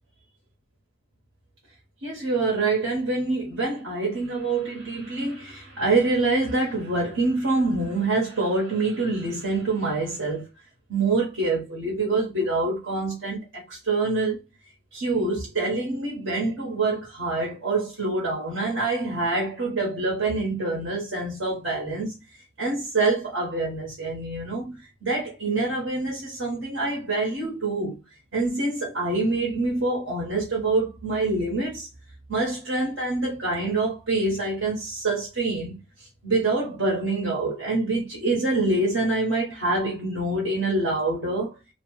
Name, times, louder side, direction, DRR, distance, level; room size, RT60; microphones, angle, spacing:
voice 1, 2.0-10.5 10.9-14.4 14.9-22.2 22.6-28.0 28.3-31.9 32.3-35.8 36.2-41.6, right 3 dB, 65° right, 1.1 m, -26 dB
2.8 x 2.1 x 3.1 m
head